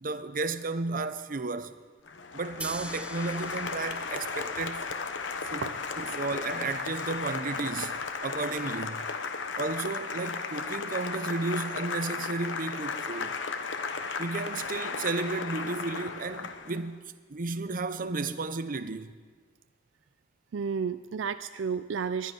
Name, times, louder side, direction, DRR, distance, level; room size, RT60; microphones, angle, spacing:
voice 1, 0.0-1.7 2.3-4.8 5.5-5.7 6.0-7.9 8.2-9.1 9.6-13.4 14.2-19.1, right 3 dB, 45° right, 0.7 m, -33 dB
Applause, 2.1-16.9, left 4 dB, 75° left, 1.0 m, -35 dB
sound 1, 2.6-8.6, right 2 dB, 5° right, 0.5 m, -46 dB
voice 2, 20.5-22.3, right 6 dB, 80° right, 0.4 m, -32 dB
20.0 x 11.5 x 5.3 m
head